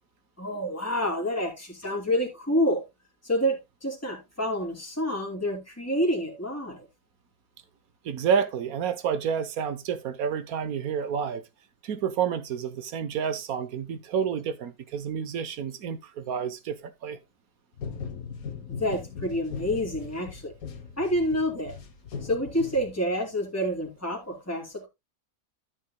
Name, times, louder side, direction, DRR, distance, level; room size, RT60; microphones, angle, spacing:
voice 1, 0.4-2.8 3.2-6.8 18.8-20.5 21.0-21.7 22.2-24.9, equal, 10° left, 2.6 m, -28 dB
voice 2, 8.0-11.4 11.8-17.2, right 7 dB, 85° right, 1.4 m, -29 dB
sound 1, 17.8-23.3, left 6 dB, 85° left, 1.6 m, -39 dB
13.0 x 7.4 x 2.2 m
omnidirectional pair, 1.5 m